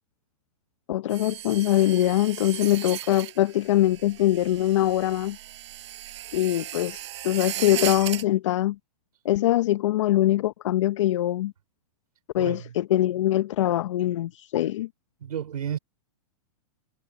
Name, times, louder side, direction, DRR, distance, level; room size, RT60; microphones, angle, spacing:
voice 1, 0.9-5.4 6.3-8.8 9.2-11.5 12.3-14.9, left 14 dB, 55° left, 0.8 m, -23 dB
sound 1, 1.1-8.2, right 14 dB, 50° right, 6.3 m, -37 dB
voice 2, 12.4-12.7 15.2-15.8, right 9 dB, 85° right, 4.9 m, -32 dB
hypercardioid pair, 165°, 19 cm